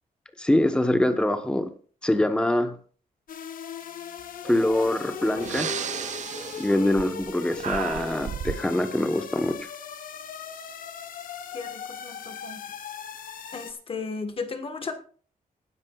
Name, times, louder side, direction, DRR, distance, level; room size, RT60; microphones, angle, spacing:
voice 1, 0.4-1.7 2.0-2.8 4.4-5.7 6.6-9.7, left 1 dB, 5° left, 8 dB, 1.1 m, -24 dB
sound 1, 3.3-13.7, left 7 dB, 70° left, 1.0 m, -39 dB
sound 2, 4.4-8.1, right 3 dB, 35° right, 3.3 m, -44 dB
Breathing, 4.8-4.9 5.3-7.3 7.6-8.7, right 9 dB, 55° right, 0.5 m, -33 dB
voice 2, 6.6-7.0 11.5-12.6 13.5-14.9, left 4 dB, 40° left, 7 dB, 1.3 m, -35 dB
19.5 x 10.5 x 2.4 m, 0.42 s
wide cardioid pair, 160°, 15 cm